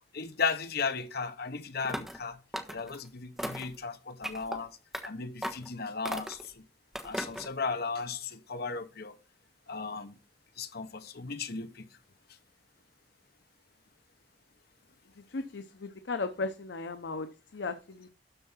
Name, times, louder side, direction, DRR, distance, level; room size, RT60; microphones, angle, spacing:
voice 1, 0.1-2.4 2.7-4.7 5.0-6.6 7.0-9.2 9.7-10.1 10.6-11.8, left 4 dB, 60° left, 1.1 m, -35 dB
sound 1, 1.8-2.2 2.5-3.0 3.4-3.8 4.2-4.6 4.9-5.1 5.4-5.7 6.0-6.5 6.9-7.5, equal, ahead, 1.3 m, -37 dB
voice 2, 15.2-18.1, left 3 dB, 90° left, 0.8 m, -36 dB
12.5 x 4.6 x 5.6 m
head